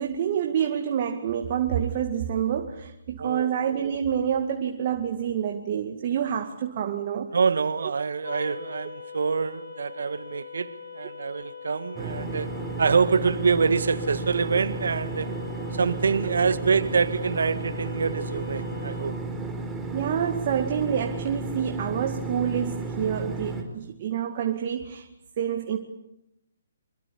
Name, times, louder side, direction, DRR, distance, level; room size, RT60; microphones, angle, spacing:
voice 1, 0.0-7.3 7.8-7.9 16.2-16.4 19.9-25.1 25.4-25.8, right 8 dB, 45° right, 2.2 m, -27 dB
voice 2, 3.2-3.5 7.3-12.5 12.8-15.4 15.7-19.2, right 5 dB, 75° right, 1.7 m, -25 dB
sound 1, 8.2-19.1, left 6 dB, 65° left, 4.3 m, -42 dB
sound 2, 12.0-23.6, right 3 dB, 5° right, 4.8 m, -33 dB
26.0 x 24.0 x 8.6 m
hypercardioid pair, 140°, 0 cm